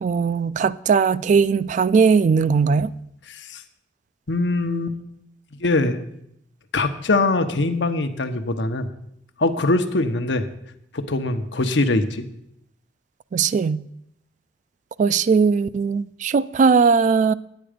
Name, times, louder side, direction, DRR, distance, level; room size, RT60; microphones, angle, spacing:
voice 1, 0.0-2.9 13.3-13.8 15.0-17.3, right 5 dB, 45° right, 0.3 m, -19 dB
voice 2, 3.3-3.6 4.3-5.0 5.5-6.0 6.7-8.9 9.4-10.5 10.9-12.3, left 2 dB, 85° left, 0.9 m, -22 dB
10.0 x 9.3 x 5.1 m
head